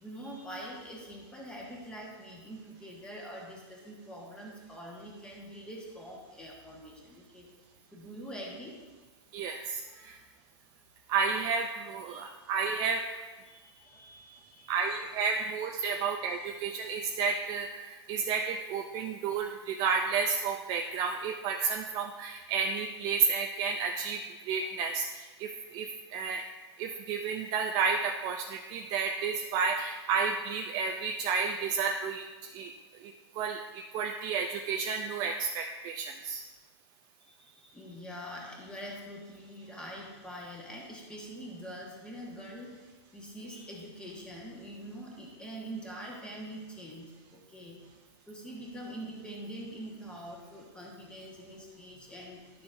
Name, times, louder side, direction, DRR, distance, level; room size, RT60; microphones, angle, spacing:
voice 1, 0.0-7.5 7.9-8.8 9.8-10.2 12.1-12.3 13.4-14.9 15.3-15.5 15.8-16.1 16.4-16.5 37.2-42.8 43.1-47.8 48.3-52.6, equal, 5° left, -2 dB, 1.4 m, -44 dB
voice 2, 9.3-10.2 11.1-13.2 14.7-26.4 26.8-32.7 33.0-36.4, right 5 dB, 25° right, 4 dB, 0.4 m, -31 dB
11.5 x 6.9 x 2.6 m, 1.3 s
hypercardioid pair, 145°, 15 cm